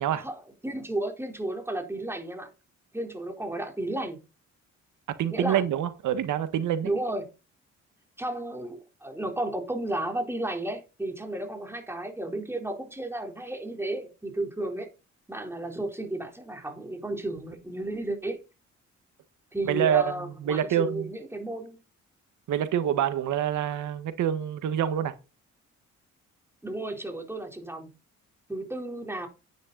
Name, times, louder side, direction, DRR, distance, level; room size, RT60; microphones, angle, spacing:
voice 1, 0.2-2.5 2.9-4.2 5.3-5.6 6.8-7.3 8.2-14.9 15.3-18.4 19.5-21.8 26.6-27.9 28.5-29.3, right 1 dB, 10° right, 4.1 m, -33 dB
voice 2, 5.2-6.9 19.6-21.1 22.5-25.1, right 10 dB, 75° right, 1.6 m, -26 dB
10.0 x 9.8 x 4.2 m
cardioid pair, 90°, 30 cm